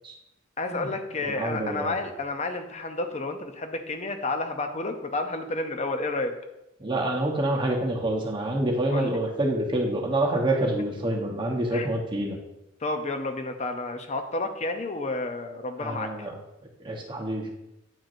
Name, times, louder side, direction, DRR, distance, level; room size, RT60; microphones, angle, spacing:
voice 1, 0.6-6.3 8.9-9.2 11.7-11.9 12.8-16.3, left 2 dB, 35° left, 6 dB, 0.6 m, -31 dB
voice 2, 1.2-2.0 6.8-12.4 15.8-16.3 16.8-17.5, right 1 dB, 25° right, 0 dB, 0.9 m, -27 dB
9.0 x 4.5 x 2.6 m, 0.90 s
head